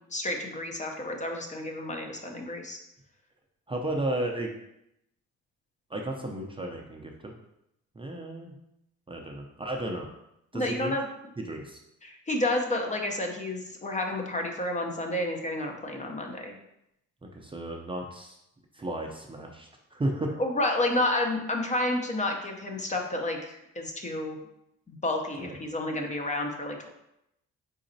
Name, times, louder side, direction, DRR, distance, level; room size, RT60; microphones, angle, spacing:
voice 1, 0.1-2.8 10.5-11.1 12.0-16.5 20.4-24.4 24.9-26.9, left 1 dB, 25° left, 2 dB, 0.6 m, -30 dB
voice 2, 3.7-4.5 5.9-7.3 8.0-8.5 9.1-10.1 10.5-10.9 11.4-11.8 17.2-18.4 18.7-20.4 25.4-25.6, right 1 dB, 15° right, 0 dB, 0.5 m, -33 dB
4.1 x 3.9 x 2.7 m, 0.83 s
cardioid pair, 90°, 30 cm